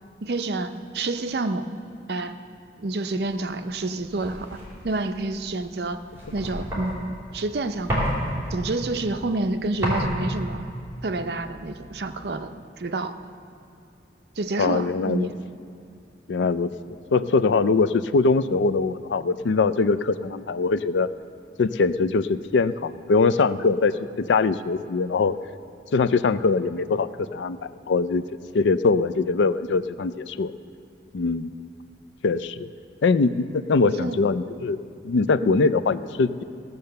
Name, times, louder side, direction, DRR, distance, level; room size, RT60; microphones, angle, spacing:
voice 1, 0.2-1.7 2.1-2.3 2.8-4.6 4.8-6.0 6.3-8.1 8.5-10.6 11.0-13.1 14.4-15.3 33.9-34.2 35.4-35.5, right 2 dB, 60° right, 9 dB, 0.6 m, -28 dB
sound 1, 3.5-12.3, equal, 15° right, 3.0 m, -32 dB
voice 2, 14.6-15.3 16.3-16.7 17.1-21.1 21.6-25.4 25.9-28.2 28.5-30.5 31.1-31.5 32.2-32.7 33.0-34.8 35.0-36.4, left 4 dB, 80° left, 13 dB, 0.4 m, -22 dB
16.5 x 6.8 x 6.6 m, 2.6 s
head